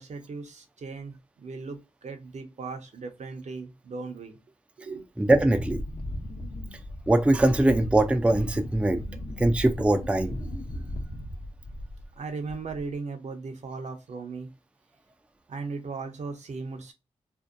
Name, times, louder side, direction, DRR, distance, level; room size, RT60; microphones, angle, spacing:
voice 1, 0.0-4.4 4.8-5.1 12.2-14.5 15.5-16.9, right 4 dB, 60° right, 0.6 m, -37 dB
voice 2, 5.2-5.8 7.1-9.0 9.4-10.4, right 1 dB, 10° right, 0.4 m, -22 dB
Wind, 5.3-12.2 12.5-12.9, left 1 dB, 45° left, 0.7 m, -36 dB
2.6 x 2.1 x 2.5 m
cardioid pair, 45°, 13 cm